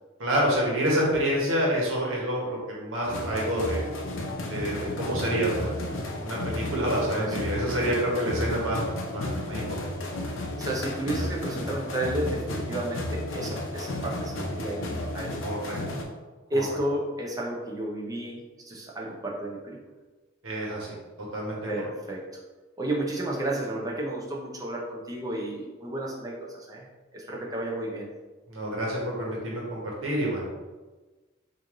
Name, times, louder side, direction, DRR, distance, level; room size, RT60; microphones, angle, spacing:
voice 1, 0.2-3.9 4.5-5.7 6.2-9.6 15.4-15.8 16.5-16.7 20.4-20.9 21.3-21.6 28.5-30.7, equal, 75° right, -3 dB, 1.2 m, -28 dB
sound 1, 3.0-16.0, left 1 dB, 70° left, 0.6 m, -33 dB
voice 2, 6.8-7.3 10.6-16.0 16.5-19.8 21.7-22.2 22.8-26.9 27.1-28.1, right 1 dB, 20° right, -3 dB, 0.7 m, -32 dB
3.1 x 2.6 x 3.7 m, 1.2 s
head